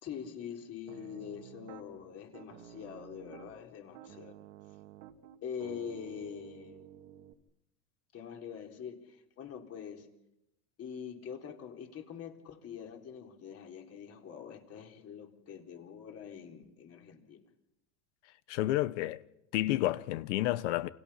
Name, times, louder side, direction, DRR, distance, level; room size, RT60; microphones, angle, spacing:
voice 1, 0.0-4.4 5.4-6.9 8.1-10.1 10.8-17.4, left 8 dB, 40° left, 4.2 m, -44 dB
Piano, 0.9-1.9 2.3-3.6 3.9-7.3, right 11 dB, 90° right, 2.3 m, -51 dB
voice 2, 18.5-19.2 19.5-20.9, left 15 dB, 80° left, 1.2 m, -30 dB
29.0 x 27.5 x 5.8 m
supercardioid pair, 120°, 36 cm